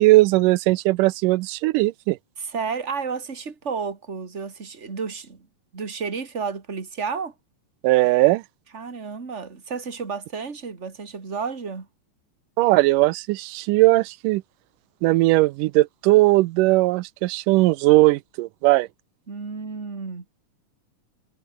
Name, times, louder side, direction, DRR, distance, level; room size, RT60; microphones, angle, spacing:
voice 1, 0.0-2.2 7.8-8.4 12.6-14.4 15.0-18.9, right 19 dB, 85° right, 2.2 m, -18 dB
voice 2, 2.4-5.5 5.7-7.3 8.7-11.9 19.3-20.2, right 5 dB, 25° right, 2.6 m, -31 dB
omnidirectional pair, 3.7 m